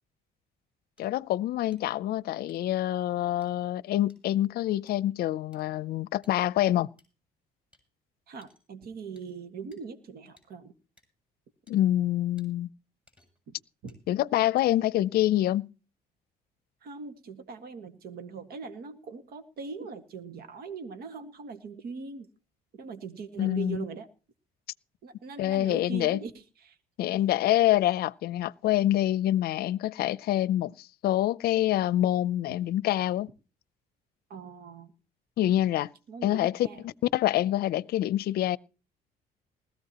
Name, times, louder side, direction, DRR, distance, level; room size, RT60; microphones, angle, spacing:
voice 1, 1.0-6.9 11.7-12.7 14.1-15.7 23.4-23.8 25.4-26.2 27.0-33.3 35.4-35.9 36.2-38.6, left 13 dB, 65° left, 0.6 m, -26 dB
sound 1, 1.0-1.1 1.7-1.8 2.5-2.7 3.4-3.5 4.1-4.2 4.9-5.0 5.5-5.6 6.2-6.5 7.0-7.1 7.7-7.8 8.4-8.7 9.2-9.3 9.7-9.8 10.4-10.5 11.0-11.1 11.7-11.8 12.4-12.5 13.1-13.5 13.9-14.0 14.6-15.0, left 2 dB, 5° right, 7.4 m, -63 dB
voice 2, 8.3-10.7 13.5-13.6 13.8-13.9 16.8-22.3 22.7-24.1 25.0-26.8 32.5-32.6 34.3-34.9 36.1-36.8, right 5 dB, 65° right, 1.8 m, -41 dB
20.0 x 14.5 x 3.0 m
cardioid pair, 110°, 17 cm